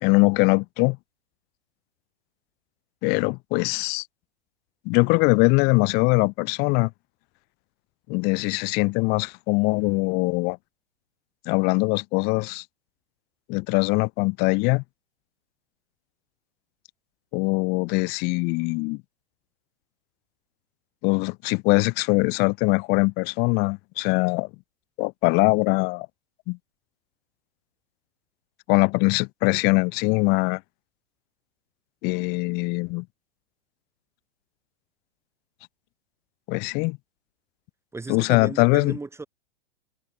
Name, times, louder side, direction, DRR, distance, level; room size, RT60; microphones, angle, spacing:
voice 1, 0.0-1.0 3.0-4.1 4.8-6.9 8.1-10.6 11.5-12.6 13.5-14.8 17.3-19.0 21.0-24.5 25.0-26.1 26.5-26.6 28.7-30.6 32.0-33.0 36.5-37.0 38.1-38.9, left 29 dB, 30° left, 0.8 m, -22 dB
voice 2, 37.9-39.3, right 3 dB, 10° right, 3.4 m, -35 dB
figure-of-eight pair, 105°, 32 cm